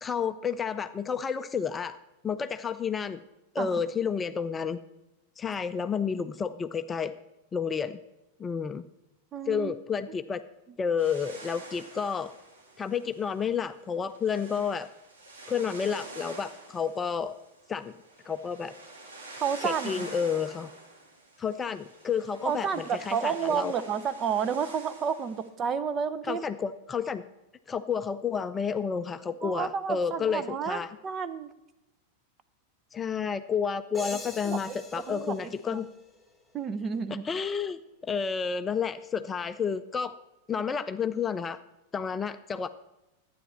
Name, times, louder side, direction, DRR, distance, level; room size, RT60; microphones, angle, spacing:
voice 1, 0.0-2.0 2.2-3.2 3.5-4.8 5.4-7.1 7.5-8.0 8.4-8.8 9.5-10.4 10.8-12.3 12.8-14.9 15.5-17.4 17.7-18.0 18.3-18.7 19.6-20.7 21.4-23.7 26.3-27.2 27.7-30.9 32.9-35.9 37.2-40.1 40.5-41.6 41.9-42.7, left 6 dB, 20° left, 11 dB, 0.5 m, -30 dB
voice 2, 9.3-9.7 19.4-20.1 22.4-26.4 29.4-31.5 34.1-34.2 34.4-34.8 35.1-35.8 36.5-37.3, right 7 dB, 25° right, 12 dB, 0.7 m, -31 dB
sound 1, 11.0-25.5, right 2 dB, 70° right, 2.5 m, -47 dB
sound 2, 33.9-36.6, left 2 dB, 5° right, 2.4 m, -44 dB
12.0 x 9.3 x 4.4 m, 0.95 s
figure-of-eight pair, 90°, 0 cm